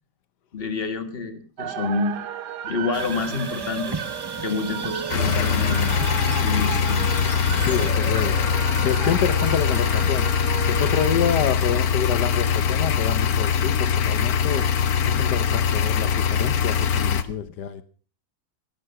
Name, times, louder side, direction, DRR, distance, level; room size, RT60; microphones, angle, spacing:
voice 1, 0.5-2.2 2.6-4.0 4.4-5.9 6.4-7.1, left 4 dB, 35° left, 9 dB, 1.9 m, -28 dB
sound 1, 1.6-11.5, right 10 dB, 85° right, 1.6 m, -34 dB
sound 2, 2.9-7.9, right 3 dB, 20° right, 0.7 m, -35 dB
sound 3, 5.1-17.2, left 7 dB, 65° left, 1.5 m, -22 dB
voice 2, 7.7-8.4 8.8-10.3 10.7-14.6 15.1-17.8, left 8 dB, 85° left, 14 dB, 1.5 m, -27 dB
18.0 x 11.5 x 5.8 m, 0.41 s
omnidirectional pair, 1.7 m